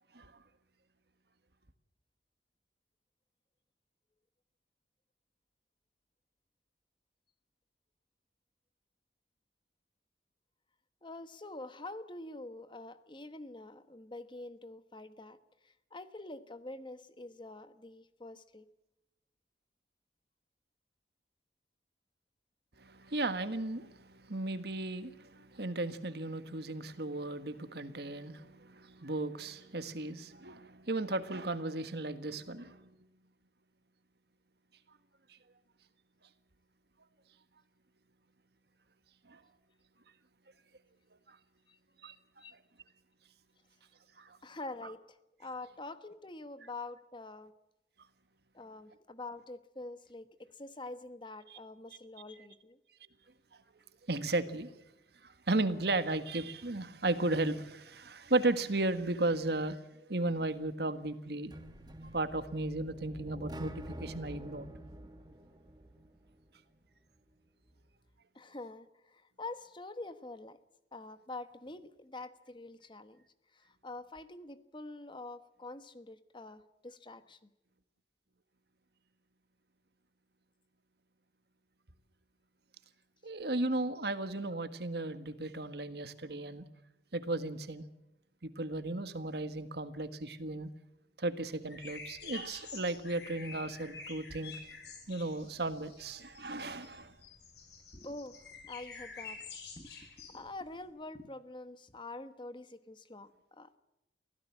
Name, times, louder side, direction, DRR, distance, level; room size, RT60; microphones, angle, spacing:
voice 1, 11.0-15.4 15.6-18.7 41.7-41.8 42.4-42.5 44.4-47.5 48.5-52.8 68.3-70.6 70.9-73.2 73.5-77.5 97.9-98.4 98.6-99.4 99.8-103.8, left 2 dB, 25° left, 1.2 m, -46 dB
voice 2, 22.8-32.9 39.3-39.4 41.3-41.4 42.0-42.1 44.2-44.4 51.5-51.6 54.1-54.7 55.2-59.8 60.1-61.5 62.1-64.7 83.2-86.7 87.1-87.9 88.4-90.7 91.2-94.6 95.1-97.1, right 2 dB, 60° right, 1.6 m, -35 dB
sound 1, 61.5-66.4, right 1 dB, 25° right, 1.7 m, -47 dB
sound 2, 91.7-100.8, left 5 dB, 65° left, 4.8 m, -49 dB
23.5 x 16.0 x 7.4 m
head